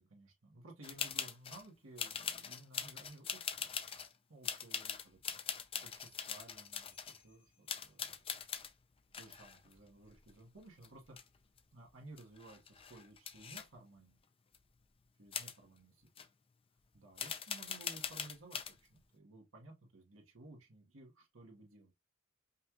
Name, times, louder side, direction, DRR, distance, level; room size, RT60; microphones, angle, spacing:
voice 1, 0.0-3.7 4.3-5.3 5.8-8.4 9.2-11.2 11.7-14.2 15.2-16.1 16.9-21.9, right 2 dB, 85° right, 1.4 m, -57 dB
sound 1, 0.8-1.7 2.0-4.1 4.4-7.2 7.7-8.7 9.1-10.6 10.8-11.6 11.9-12.0 12.2-13.7 14.5-14.6 15.3-15.6 16.2-16.3 17.2-18.7, left 7 dB, 30° left, 0.5 m, -42 dB
5.4 x 2.4 x 2.9 m
head